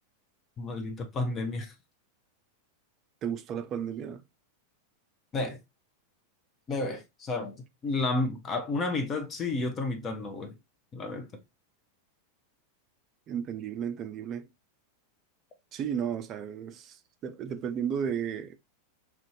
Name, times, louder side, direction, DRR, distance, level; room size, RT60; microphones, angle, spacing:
voice 1, 0.6-1.7 5.3-5.6 6.7-7.5 7.8-10.6 10.9-11.4, left 3 dB, 25° left, 0.6 m, -31 dB
voice 2, 3.2-4.2 13.3-14.5 15.7-18.6, right 8 dB, 30° right, 0.4 m, -33 dB
3.1 x 2.6 x 3.1 m
figure-of-eight pair, 90°, 0 cm